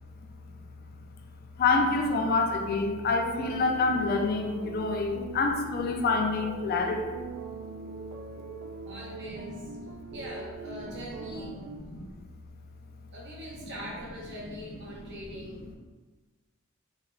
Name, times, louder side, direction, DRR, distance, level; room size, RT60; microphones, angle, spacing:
voice 1, 1.6-7.2 11.9-12.1, left 3 dB, 45° left, 3 dB, 0.4 m, -27 dB
sound 1, 3.2-11.8, right 4 dB, 85° right, 0.3 m, -42 dB
voice 2, 8.8-9.7 10.1-11.5 13.1-15.8, equal, 55° right, -4 dB, 0.8 m, -42 dB
3.5 x 2.2 x 3.2 m, 1.3 s
head